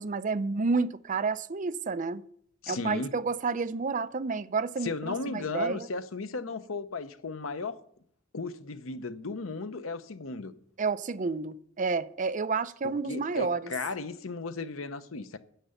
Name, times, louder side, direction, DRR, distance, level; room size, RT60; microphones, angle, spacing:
voice 1, 0.0-2.2 2.7-5.9 10.8-13.7, right 4 dB, 40° right, 0.5 m, -30 dB
voice 2, 2.6-3.1 4.8-7.8 8.3-10.5 12.8-15.4, left 4 dB, 90° left, 0.8 m, -35 dB
10.0 x 6.8 x 9.1 m
head